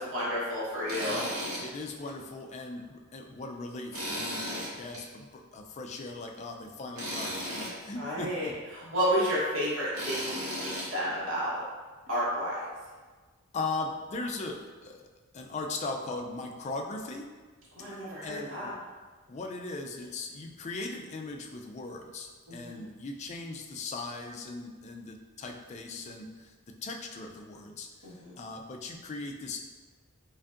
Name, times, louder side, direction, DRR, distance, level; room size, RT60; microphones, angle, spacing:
voice 1, 0.0-1.2 8.0-8.5 8.7-11.6 12.1-12.7 17.7-18.7 22.5-22.9 28.0-28.3, equal, 65° right, -8 dB, 1.2 m, -31 dB
Tools, 0.9-1.6 2.0-2.1 3.9-5.0 7.0-7.7 9.9-10.9, equal, 85° right, 1.2 m, -35 dB
voice 2, 1.1-8.5 8.8-8.9 13.5-15.0 15.3-17.3 18.2-18.7 19.3-26.5 26.8-29.6, left 3 dB, 30° left, 3 dB, 0.3 m, -39 dB
4.8 x 2.6 x 2.5 m, 1.4 s
head